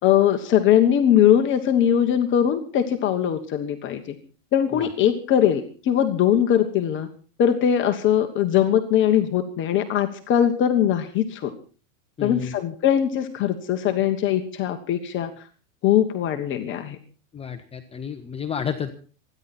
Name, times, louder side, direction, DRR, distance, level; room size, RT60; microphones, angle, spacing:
voice 1, 0.0-4.2 4.5-7.1 7.4-11.5 12.2-15.5 15.8-17.0, left 10 dB, 30° left, 5 dB, 1.4 m, -21 dB
voice 2, 12.2-12.5 17.3-18.9, left 7 dB, 15° left, 6 dB, 1.1 m, -31 dB
26.5 x 10.5 x 4.3 m, 0.38 s
supercardioid pair, 135°, 38 cm